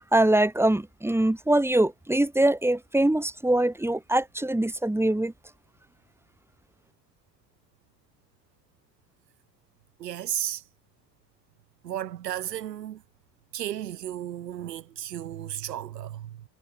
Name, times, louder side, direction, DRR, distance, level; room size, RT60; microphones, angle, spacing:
voice 1, 0.1-5.3, right 1 dB, 5° right, 2.0 m, -23 dB
voice 2, 10.0-10.6 11.8-13.0 13.5-16.4, right 11 dB, 90° right, 2.3 m, -34 dB
hypercardioid pair, 65°, 47 cm